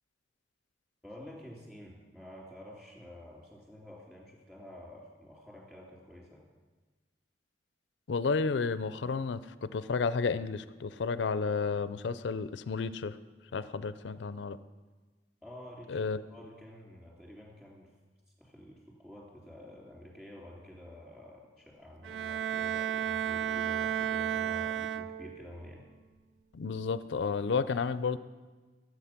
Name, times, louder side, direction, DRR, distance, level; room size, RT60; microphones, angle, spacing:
voice 1, 1.0-6.4 15.4-17.9 18.4-25.8, left 1 dB, 5° right, -3 dB, 2.9 m, -49 dB
voice 2, 8.1-13.2 13.5-14.6 15.9-16.2 26.5-28.2, left 5 dB, 80° left, 15 dB, 0.4 m, -32 dB
Bowed string instrument, 22.0-25.5, right 9 dB, 90° right, 0.4 m, -33 dB
13.5 x 8.1 x 5.9 m, 1.3 s
head